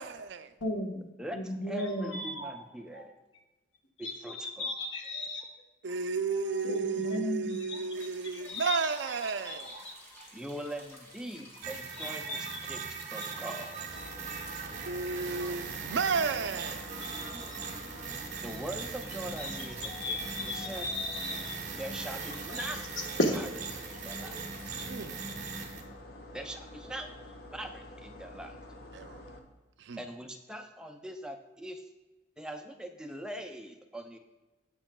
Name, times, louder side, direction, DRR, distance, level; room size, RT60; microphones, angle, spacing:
voice 1, 0.0-0.5 5.8-9.7 14.9-16.8 24.9-25.2 28.9-29.2 29.8-30.0, right 5 dB, 65° right, 0.4 m, -33 dB
voice 2, 0.6-1.1 1.3-2.6 2.9-3.1 4.0-5.5 5.9-6.0 6.2-10.3 11.3-11.4 11.9-12.5 13.2-13.4 13.6-14.1 17.0-18.0 19.4-21.8 22.5-22.7 23.2-23.3 24.8-24.9, left 1 dB, 80° left, 1.2 m, -36 dB
voice 3, 1.2-3.1 4.0-4.7 10.3-12.9 13.1-14.0 18.4-20.9 21.7-23.0 23.9-24.4 26.3-27.1 27.5-28.6 30.0-31.9 32.4-34.2, right 1 dB, 5° right, 0.4 m, -42 dB
sound 1, 7.9-24.9, equal, 15° left, 1.5 m, -54 dB
sound 2, 11.6-25.8, right 5 dB, 40° right, 1.1 m, -40 dB
sound 3, 13.9-29.4, left 1 dB, 55° left, 0.8 m, -48 dB
14.5 x 4.8 x 2.2 m
head